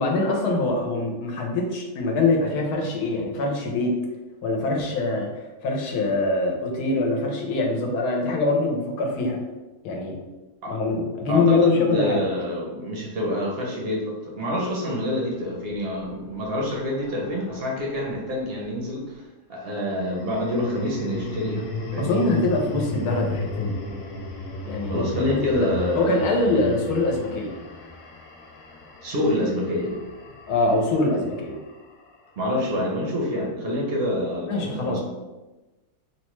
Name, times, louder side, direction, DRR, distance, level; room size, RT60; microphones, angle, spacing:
voice 1, 0.0-4.0 4.4-9.4 9.8-10.2 10.7-12.2 22.0-23.7 24.6-25.7 26.0-27.5 30.5-31.6 34.5-35.0, left 2 dB, 90° left, 1 dB, 1.1 m, -23 dB
voice 2, 11.3-19.1 19.5-21.6 21.9-22.1 24.9-26.3 26.5-26.7 29.0-30.0 32.4-35.0, left 1 dB, 60° right, -2 dB, 0.6 m, -27 dB
sound 1, 15.8-18.3 19.9-32.2, left 2 dB, 70° left, 0.9 m, -35 dB
3.1 x 2.1 x 3.0 m, 1.1 s
omnidirectional pair, 1.6 m